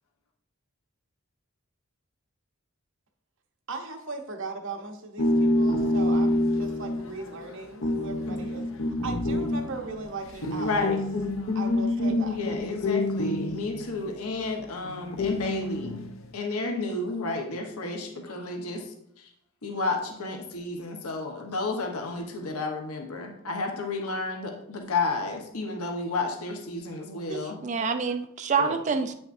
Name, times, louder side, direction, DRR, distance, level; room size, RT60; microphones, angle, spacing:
voice 1, 3.7-8.7 9.0-10.9 11.5-12.4, right 3 dB, 55° right, 4 dB, 0.9 m, -38 dB
sound 1, 5.2-14.1 14.8-16.2, left 1 dB, 60° left, 0.6 m, -27 dB
voice 2, 10.6-11.0 12.3-16.0 16.3-18.8 19.2-19.3 19.6-27.6 28.6-28.7, left 3 dB, 80° left, 2 dB, 1.0 m, -31 dB
voice 3, 27.3-29.1, right 5 dB, 30° right, 8 dB, 0.4 m, -27 dB
8.8 x 5.9 x 2.6 m, 0.76 s
head